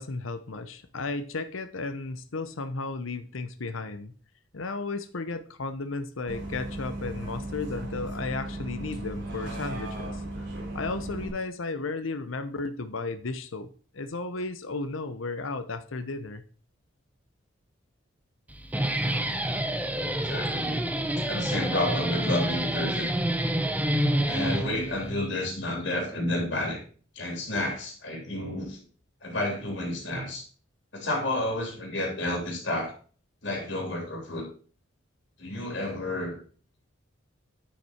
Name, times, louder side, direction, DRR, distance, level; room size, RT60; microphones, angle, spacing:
voice 1, 0.0-4.1 4.5-10.2 10.7-16.4, left 3 dB, 85° left, 9 dB, 0.8 m, -34 dB
Bus, 6.3-11.3, right 1 dB, 60° right, 3.2 m, -36 dB
Guitar, 18.5-25.1, right 1 dB, 10° right, 0.7 m, -28 dB
voice 2, 20.2-20.8 21.2-23.1 24.3-26.8 27.2-28.8 29.2-30.4 30.9-32.9 33.4-34.5 35.4-36.4, left 1 dB, 65° left, 1 dB, 3.5 m, -30 dB
10.0 x 5.9 x 4.4 m, 0.42 s
head